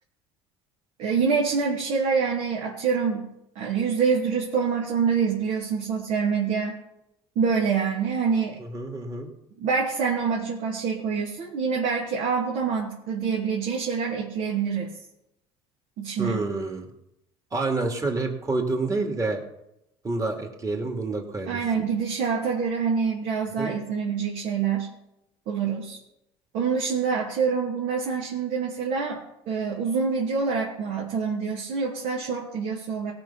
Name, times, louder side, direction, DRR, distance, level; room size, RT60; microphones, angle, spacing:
voice 1, 1.0-3.3 3.5-6.8 7.4-8.6 9.6-14.9 16.0-16.4 21.5-24.9 25.5-26.0 26.5-33.1, right 5 dB, 70° right, -3 dB, 2.6 m, -26 dB
voice 2, 8.7-9.3 16.2-16.9 17.5-19.4 20.0-21.6 23.6-23.7, right 3 dB, 25° right, 2 dB, 2.7 m, -28 dB
17.5 x 6.0 x 5.8 m, 0.84 s
supercardioid pair, 95°, 14 cm